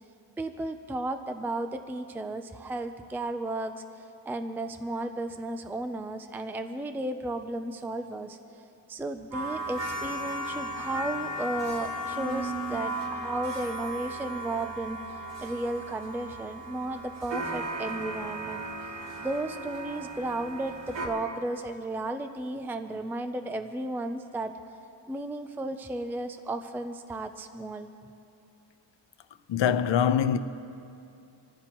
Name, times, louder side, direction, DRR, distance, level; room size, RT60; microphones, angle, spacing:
voice 1, 0.4-8.4 8.9-15.0 15.4-18.6 19.2-24.6 25.1-27.9, right 2 dB, 5° right, 0.4 m, -34 dB
sound 1, 9.3-21.1, right 1 dB, 85° right, 2.5 m, -36 dB
voice 2, 29.5-30.4, left 8 dB, 85° left, 0.7 m, -23 dB
27.0 x 14.5 x 3.0 m
wide cardioid pair, 170°, 43 cm